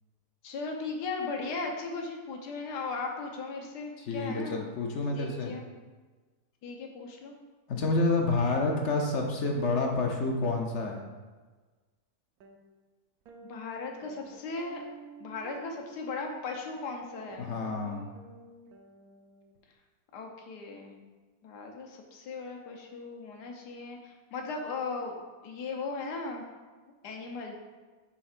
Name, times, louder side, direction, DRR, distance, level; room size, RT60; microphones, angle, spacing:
voice 1, 0.4-4.6 5.1-5.7 6.6-7.4 13.4-14.8 15.2-17.5 20.1-21.0 21.4-25.2 25.4-26.4 27.0-27.5, left 4 dB, 85° left, 1 dB, 1.4 m, -37 dB
voice 2, 4.0-5.5 7.7-11.0 17.4-18.0, left 3 dB, 60° left, 1 dB, 0.8 m, -29 dB
sound 1, 12.4-12.6 13.3-19.6, right 3 dB, 70° right, 1.1 m, -50 dB
7.0 x 5.6 x 2.5 m, 1.3 s
omnidirectional pair, 1.7 m